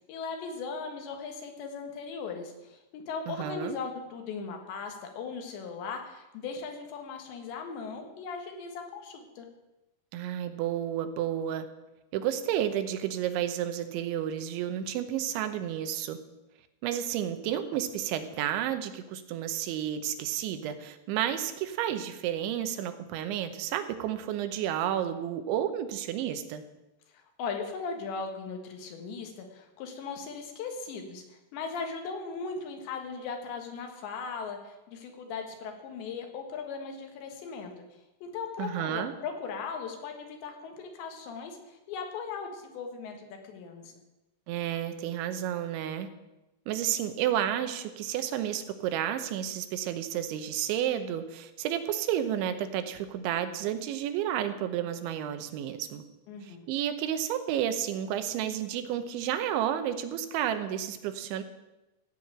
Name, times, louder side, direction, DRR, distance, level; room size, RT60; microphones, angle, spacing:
voice 1, 0.1-9.5 27.1-37.8 38.2-43.9 56.3-56.7, left 5 dB, 75° left, 4 dB, 3.7 m, -38 dB
voice 2, 3.3-3.8 10.1-11.7 12.1-16.2 16.8-26.6 38.6-39.1 44.5-46.1 46.7-56.0 56.4-61.4, right 10 dB, 85° right, 9 dB, 3.3 m, -31 dB
15.5 x 5.7 x 8.8 m, 1.0 s
omnidirectional pair, 5.2 m